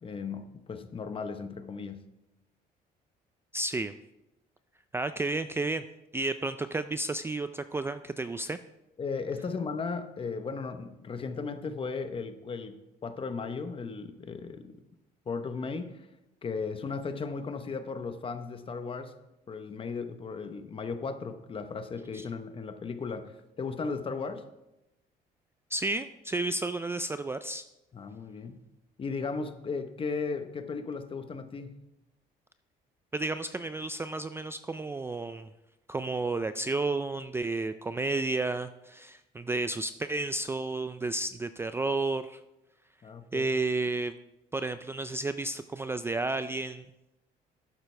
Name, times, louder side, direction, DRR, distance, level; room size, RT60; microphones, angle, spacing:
voice 1, 0.0-2.0 9.0-14.8 15.3-16.1 16.4-19.1 19.5-24.4 27.9-28.6 29.0-31.7 43.0-43.5, left 4 dB, 30° left, 9 dB, 1.0 m, -36 dB
voice 2, 3.5-3.9 4.9-5.8 6.1-8.6 22.1-22.3 25.7-27.6 33.1-35.5 35.9-42.4 43.3-44.1 44.5-46.8, right 2 dB, 15° right, 11 dB, 0.3 m, -32 dB
12.0 x 8.9 x 3.3 m, 0.92 s
cardioid pair, 110°, 17 cm